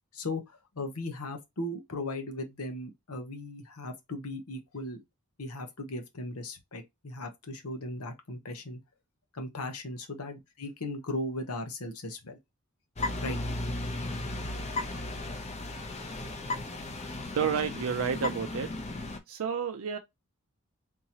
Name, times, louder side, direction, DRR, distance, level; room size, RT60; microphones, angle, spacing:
voice 1, 0.1-5.0 5.4-8.8 9.3-12.4 13.2-13.4, left 1 dB, 90° left, 0.9 m, -37 dB
sound 1, 13.0-19.2, left 2 dB, 30° left, 0.6 m, -35 dB
voice 2, 17.4-18.7 19.3-20.0, right 7 dB, 70° right, 0.4 m, -30 dB
3.7 x 2.8 x 2.9 m
head